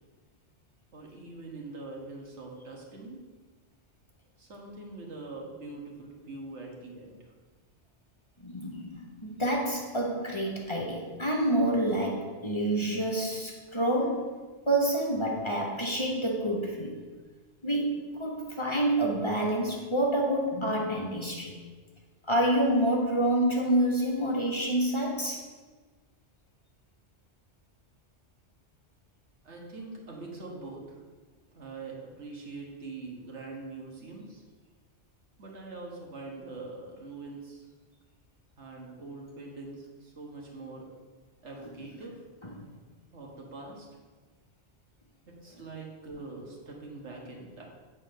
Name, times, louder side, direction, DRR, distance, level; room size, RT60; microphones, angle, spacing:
voice 1, 0.9-3.2 4.4-7.3 29.4-31.0 31.5-34.4 35.4-37.7 38.6-40.9 41.4-42.2 43.1-43.9 45.3-47.7, right 3 dB, 80° right, -1 dB, 1.7 m, -43 dB
voice 2, 8.4-14.4 14.7-17.0 17.6-21.6 22.2-25.4 42.4-42.7, right 1 dB, 25° left, -2 dB, 1.2 m, -28 dB
8.3 x 4.2 x 6.5 m, 1.4 s
omnidirectional pair, 1.2 m